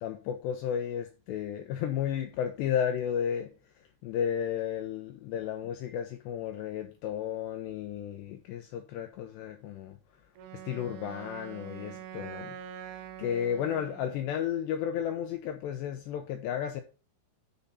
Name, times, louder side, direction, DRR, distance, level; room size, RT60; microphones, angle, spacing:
voice 1, 0.0-3.5 4.0-10.0 10.5-16.8, left 9 dB, 80° left, 2.6 m, -33 dB
Wind instrument woodwind instrument, 10.4-14.3, right 10 dB, 80° right, 2.2 m, -44 dB
12.5 x 5.6 x 4.2 m
omnidirectional pair, 5.9 m